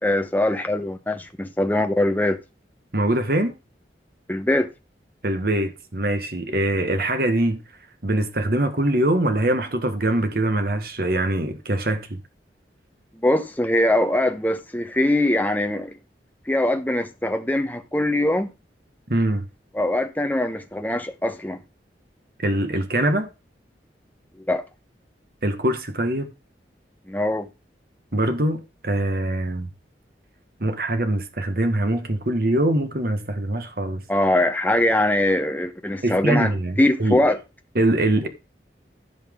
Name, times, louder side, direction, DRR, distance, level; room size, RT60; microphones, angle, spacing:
voice 1, 0.0-2.4 4.3-4.7 13.2-16.0 16.5-18.5 19.7-21.6 24.5-24.6 27.1-27.5 34.1-36.5 36.8-37.4, left 1 dB, 10° left, 1.0 m, -22 dB
voice 2, 2.9-3.5 5.2-7.6 8.0-12.2 19.1-19.4 22.4-23.3 25.4-26.3 28.1-29.7 30.6-34.0 36.0-37.2 37.7-38.3, right 1 dB, 55° right, 1.4 m, -23 dB
15.5 x 5.8 x 3.7 m
head